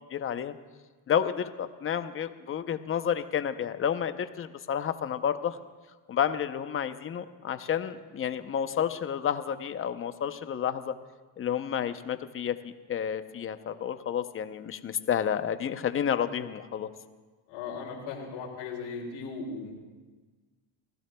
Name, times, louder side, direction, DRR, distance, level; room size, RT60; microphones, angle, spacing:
voice 1, 0.1-0.5 1.1-5.6 6.1-10.9 11.4-16.9, left 8 dB, 25° left, 11 dB, 0.7 m, -30 dB
voice 2, 17.5-19.7, left 4 dB, 85° left, -7 dB, 3.0 m, -37 dB
28.0 x 15.5 x 2.3 m, 1.3 s
cardioid pair, 115°, 47 cm